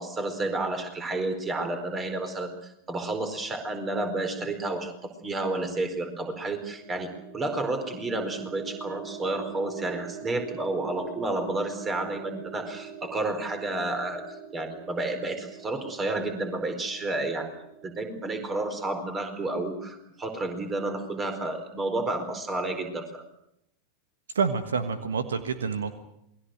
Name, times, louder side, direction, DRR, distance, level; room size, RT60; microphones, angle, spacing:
voice 1, 0.0-2.5 2.9-14.2 14.5-17.5 17.8-23.2, right 2 dB, 20° right, 7 dB, 4.5 m, -31 dB
sound 1, 6.3-18.1, right 7 dB, 50° right, 5.0 m, -43 dB
voice 2, 24.3-25.9, right 5 dB, 70° right, 10 dB, 1.5 m, -27 dB
28.0 x 21.0 x 6.5 m, 0.79 s
figure-of-eight pair, 90°, 0 cm